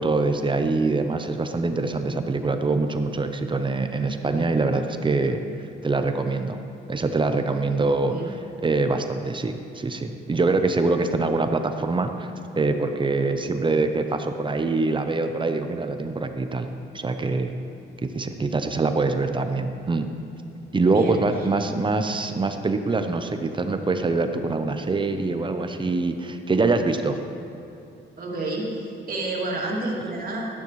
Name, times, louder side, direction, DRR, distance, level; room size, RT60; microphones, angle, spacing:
voice 1, 0.0-5.4 5.8-6.6 6.9-8.3 8.6-16.7 16.9-17.5 18.1-20.1 20.7-27.2, right 3 dB, 25° right, 7 dB, 0.7 m, -24 dB
voice 2, 20.8-21.2 28.2-28.7 29.1-30.6, right 2 dB, 45° right, -4 dB, 2.5 m, -29 dB
12.0 x 10.5 x 3.2 m, 2.9 s
cardioid pair, 90°, 20 cm